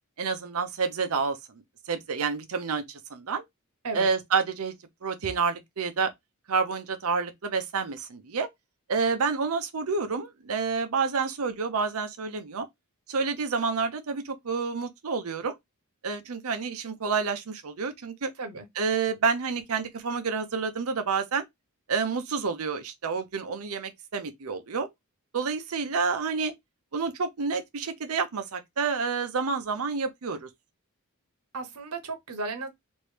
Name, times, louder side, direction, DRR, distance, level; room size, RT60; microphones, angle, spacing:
voice 1, 0.2-1.4 1.9-3.4 3.9-4.7 5.0-6.1 6.5-8.5 8.9-12.7 13.1-15.6 16.0-18.3 18.8-21.4 21.9-24.9 25.3-26.5 26.9-30.5, right 5 dB, 75° right, 0.6 m, -29 dB
voice 2, 31.5-32.7, right 3 dB, 90° right, 1.0 m, -34 dB
3.1 x 2.6 x 3.2 m
head